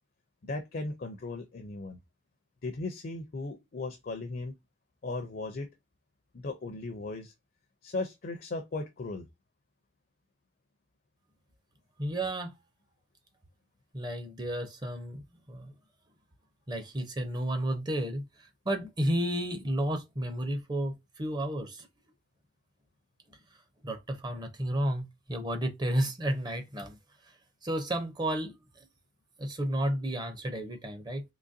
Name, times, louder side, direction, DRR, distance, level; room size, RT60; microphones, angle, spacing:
voice 1, 0.4-2.0 2.6-4.5 5.0-5.7 6.3-7.3 7.8-9.2, left 2 dB, 45° left, 0.5 m, -37 dB
voice 2, 12.0-12.6 13.9-15.7 16.7-21.9 23.8-27.0 27.6-28.6 29.4-31.2, right 1 dB, 20° right, 0.6 m, -32 dB
3.8 x 3.0 x 2.6 m
head